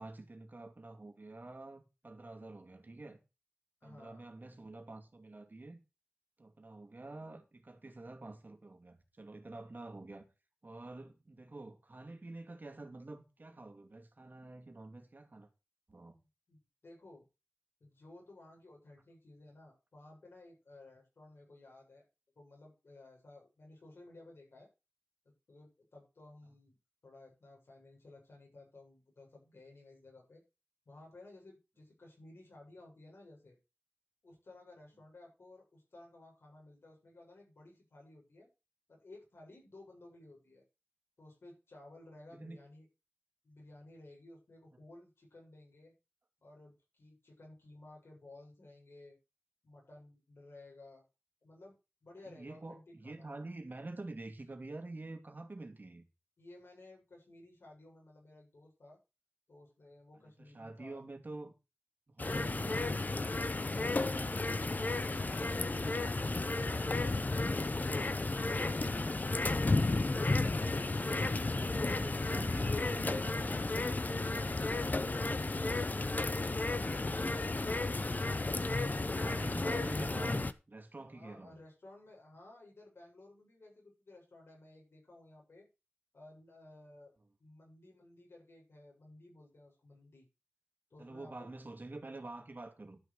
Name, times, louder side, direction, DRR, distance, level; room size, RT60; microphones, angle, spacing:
voice 1, 0.0-3.2 3.8-5.8 6.4-10.3 10.6-15.5 15.9-16.1 42.3-42.6 52.3-56.0 60.4-61.5 62.1-63.1 71.7-74.9 79.2-81.6 91.0-93.0, right 2 dB, 50° right, 2.4 m, -48 dB
voice 2, 3.8-4.3 16.1-17.3 17.8-22.1 22.4-24.7 25.5-26.8 27.0-30.4 30.9-33.6 34.2-38.5 38.9-40.6 41.2-42.9 43.4-45.9 46.4-49.2 49.6-51.0 51.4-51.8 52.0-53.3 56.4-59.0 59.5-61.0 63.7-67.7 74.4-75.3 81.0-85.7 86.1-87.1 87.4-90.3 90.9-91.5, left 2 dB, 85° left, 7.0 m, -56 dB
sound 1, 62.2-80.5, left 2 dB, 45° left, 0.9 m, -33 dB
12.0 x 6.3 x 6.4 m
wide cardioid pair, 65°, 4 cm